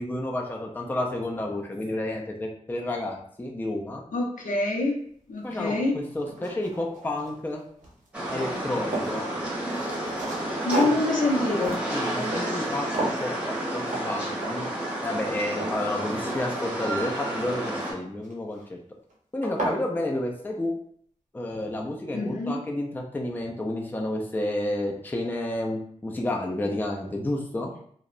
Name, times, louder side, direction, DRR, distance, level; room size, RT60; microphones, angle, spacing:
voice 1, 0.0-4.0 5.4-7.6 8.3-9.3 11.9-14.7 15.0-18.8 19.3-20.7 21.3-27.7, left 1 dB, 15° left, -1 dB, 0.4 m, -30 dB
voice 2, 4.1-5.0 5.3-6.0 10.6-11.8 22.1-22.6, left 2 dB, 85° left, -1 dB, 0.6 m, -26 dB
sound 1, 5.5-5.6 6.1-7.5 7.8-9.2 9.7-12.7 12.9-13.3 13.9-14.1 14.4-14.8 15.2-16.8 18.2-18.6 19.1-19.2 19.4-19.8, right 1 dB, 80° right, 0.7 m, -33 dB
sound 2, 8.1-17.9, right 1 dB, 10° right, 0.8 m, -31 dB
2.7 x 2.0 x 2.4 m, 0.62 s
wide cardioid pair, 95°, 13 cm